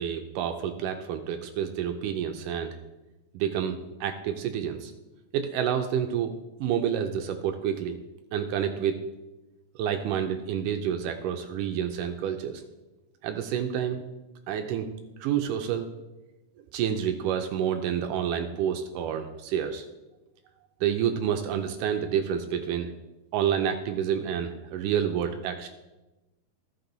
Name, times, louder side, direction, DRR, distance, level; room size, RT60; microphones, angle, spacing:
voice 1, 0.0-2.8 3.3-4.9 5.3-6.3 6.6-8.0 8.3-9.0 9.8-12.6 13.2-14.0 14.5-14.9 15.2-15.9 16.7-19.9 20.8-22.9 23.3-25.7, right 9 dB, 80° right, 6 dB, 1.9 m, -29 dB
14.0 x 6.0 x 3.9 m, 1.0 s
omnidirectional pair, 4.3 m